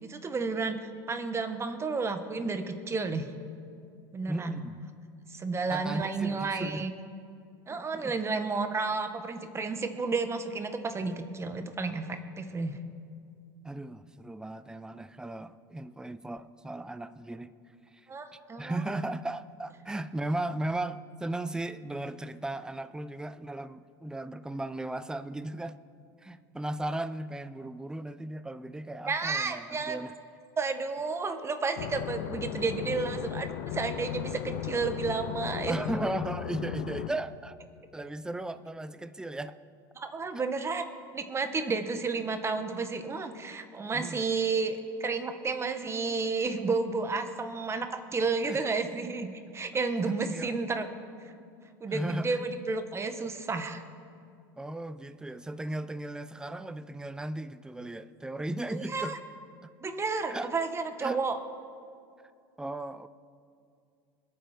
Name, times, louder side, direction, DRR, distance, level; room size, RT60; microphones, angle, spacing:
voice 1, 0.0-3.3 4.1-4.6 5.3-6.9 7.7-12.8 18.1-18.8 29.1-30.0 30.6-35.8 40.0-40.8 41.1-49.3 49.5-50.9 51.8-53.8 58.7-59.2 59.8-61.4, right 4 dB, 25° right, 1.7 m, -31 dB
voice 2, 4.3-4.9 5.7-6.9 7.7-8.1 13.6-17.5 17.9-18.1 18.6-25.8 26.2-30.1 35.7-37.6 37.9-39.6 40.3-40.5 43.9-44.2 48.5-48.6 50.1-50.6 51.9-52.4 54.6-59.2 60.3-60.5 61.0-61.2 62.6-63.1, right 1 dB, 5° right, 0.6 m, -36 dB
sound 1, 31.8-37.1, left 13 dB, 65° left, 0.7 m, -36 dB
26.0 x 9.0 x 4.6 m
hypercardioid pair, 85°, 11 cm